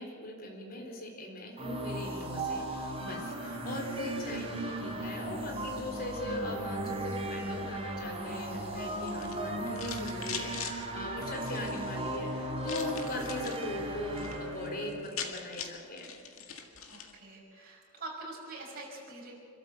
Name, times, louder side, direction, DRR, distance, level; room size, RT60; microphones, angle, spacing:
voice 1, 0.0-16.1, left 1 dB, 45° left, 1 dB, 3.8 m, -40 dB
sound 1, 1.6-15.1, right 1 dB, 30° right, 3.3 m, -36 dB
sound 2, 9.0-10.8 11.4-11.9 12.6-13.6 14.0-14.4 14.7-14.8 14.9-17.1, left 7 dB, 80° left, 1.9 m, -41 dB
voice 2, 16.9-19.3, right 2 dB, 45° right, -3 dB, 5.9 m, -44 dB
25.5 x 13.0 x 8.0 m, 2.2 s
head